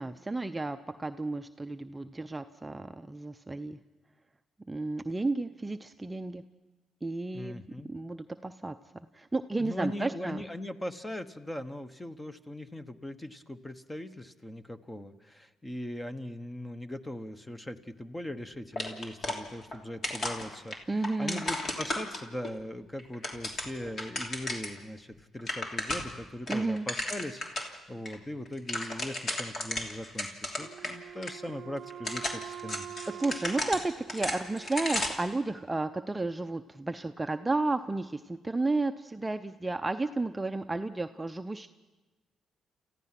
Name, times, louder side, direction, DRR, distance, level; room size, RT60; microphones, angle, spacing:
voice 1, 0.0-3.8 4.7-6.4 7.0-10.4 20.9-21.5 26.5-26.9 30.8-31.2 33.1-41.7, right 2 dB, 15° right, 8 dB, 0.6 m, -32 dB
voice 2, 7.3-7.9 9.6-32.9, left 1 dB, 10° left, 10 dB, 1.2 m, -40 dB
sound 1, 18.8-19.8 20.0-22.5 23.0-24.8 25.1-25.2 25.4-26.2 26.5-27.7 28.0-28.1 28.4-30.9 31.2-31.3 31.9-35.3, left 1 dB, 45° left, 3.1 m, -34 dB
Wind instrument woodwind instrument, 30.6-35.1, right 10 dB, 60° right, 0.7 m, -45 dB
29.5 x 15.0 x 6.0 m, 1.2 s
cardioid pair, 90°, 0 cm